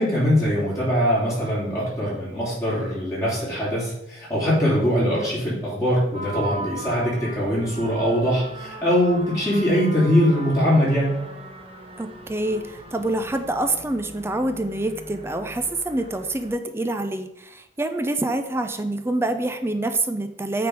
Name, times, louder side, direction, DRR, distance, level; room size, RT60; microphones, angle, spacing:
voice 1, 0.0-11.2, equal, 20° left, -8 dB, 3.1 m, -22 dB
sound 1, 6.1-16.5, right 1 dB, 35° right, 1.1 m, -39 dB
voice 2, 12.0-20.7, right 2 dB, 15° right, 8 dB, 0.5 m, -26 dB
8.8 x 3.9 x 4.9 m, 0.79 s
head